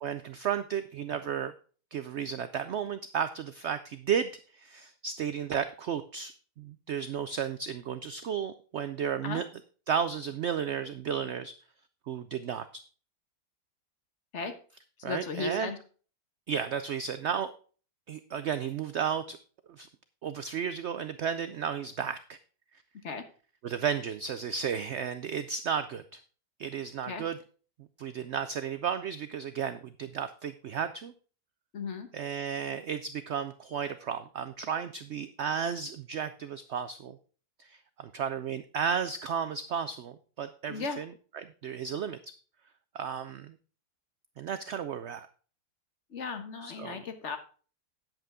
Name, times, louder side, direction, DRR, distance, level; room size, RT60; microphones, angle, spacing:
voice 1, 0.0-1.5 1.9-9.5 9.9-11.5 12.1-12.8 15.0-15.7 16.5-17.5 18.1-19.4 19.7-19.9 20.2-22.4 23.6-26.2 26.6-27.4 28.0-31.1 32.1-37.2 37.6-42.3 42.9-43.5 44.4-45.3 46.6-47.0, right 7 dB, 85° right, 12 dB, 0.6 m, -33 dB
voice 2, 15.0-15.8 23.0-23.2 27.1-27.2 31.7-32.1 40.6-41.0 46.1-47.4, left 4 dB, 50° left, 8 dB, 1.2 m, -35 dB
8.9 x 8.1 x 3.7 m, 0.39 s
omnidirectional pair, 1.8 m